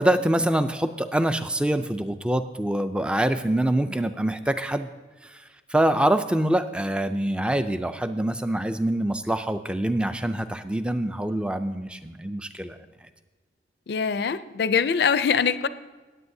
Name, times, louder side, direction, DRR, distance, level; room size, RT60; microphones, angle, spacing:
voice 1, 0.0-4.9 5.2-5.4 5.7-12.8, right 1 dB, 5° right, 10 dB, 0.3 m, -25 dB
voice 2, 13.9-15.7, left 6 dB, 60° left, 13 dB, 0.4 m, -23 dB
17.0 x 8.3 x 2.7 m, 1.3 s
head